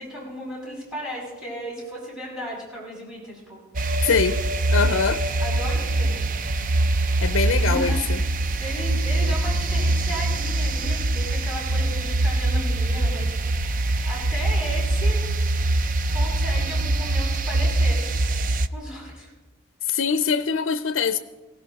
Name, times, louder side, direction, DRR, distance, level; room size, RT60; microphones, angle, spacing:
voice 1, 0.0-3.6 5.4-6.2 7.4-8.0 8.6-13.3 13.6-15.3 16.1-18.0 18.7-19.3, equal, 5° right, 6.8 m, -35 dB
sound 1, 3.7-18.7, right 2 dB, 40° right, 0.5 m, -23 dB
voice 2, 4.0-4.4 4.7-5.2 7.2-8.2 19.8-21.2, left 5 dB, 70° left, 0.5 m, -23 dB
19.5 x 17.0 x 4.1 m
head